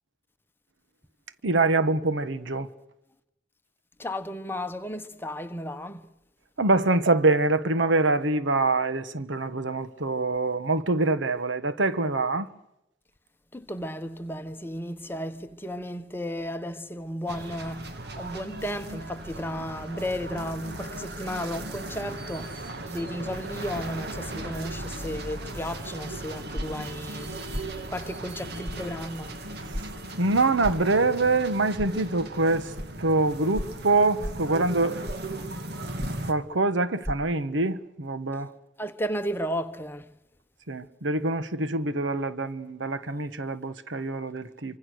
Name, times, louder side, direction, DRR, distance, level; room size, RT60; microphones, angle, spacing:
voice 1, 1.4-2.7 6.6-12.5 29.7-29.8 30.2-32.7 33.0-35.0 36.3-38.5 40.7-44.8, right 2 dB, 85° right, 1.2 m, -25 dB
voice 2, 4.0-6.1 13.5-29.4 38.8-40.1, equal, 10° left, 1.2 m, -34 dB
sound 1, 17.3-36.3, right 2 dB, 60° right, 2.1 m, -37 dB
sound 2, 26.5-26.9 27.5-27.7 28.7-28.8 29.7-29.9 30.6-30.9 31.8-31.9 32.8-32.9 33.5-33.8 34.2-34.5 35.1-35.3 36.0-36.3 37.0-37.2, equal, 15° right, 1.0 m, -33 dB
26.5 x 25.0 x 6.5 m
head